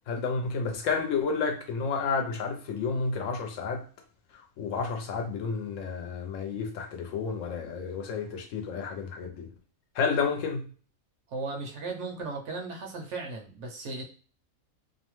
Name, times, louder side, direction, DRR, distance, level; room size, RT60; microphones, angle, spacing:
voice 1, 0.1-3.8 4.6-9.5 10.0-10.6, left 5 dB, 70° left, 3 dB, 0.9 m, -30 dB
voice 2, 11.3-14.0, right 3 dB, 65° right, 1 dB, 0.8 m, -36 dB
2.7 x 2.0 x 3.0 m, 0.40 s
omnidirectional pair, 1.4 m